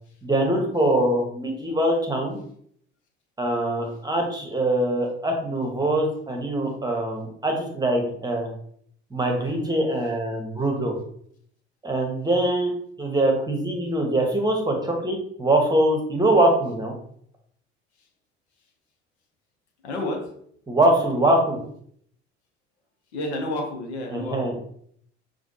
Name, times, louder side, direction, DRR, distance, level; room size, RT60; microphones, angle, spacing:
voice 1, 0.2-2.4 3.4-8.5 9.1-10.9 11.8-12.7 13.0-16.9 20.7-21.6 24.1-24.5, right 1 dB, 10° right, 1 dB, 1.1 m, -23 dB
voice 2, 19.8-20.2 23.1-24.4, left 1 dB, 70° left, 3 dB, 1.0 m, -29 dB
6.1 x 2.5 x 2.8 m, 0.65 s
figure-of-eight pair, 60°, 34 cm